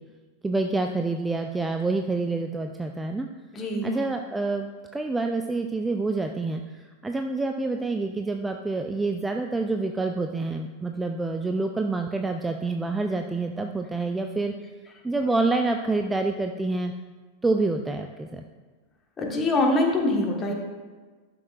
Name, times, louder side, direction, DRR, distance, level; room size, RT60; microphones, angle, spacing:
voice 1, 0.4-3.3 3.8-14.5 15.0-16.9 17.4-18.4, right 3 dB, 10° right, 5 dB, 0.4 m, -27 dB
voice 2, 3.5-3.9 19.2-20.5, left 2 dB, 20° left, 0 dB, 1.5 m, -24 dB
12.0 x 6.3 x 2.5 m, 1.4 s
figure-of-eight pair, 90°, 0 cm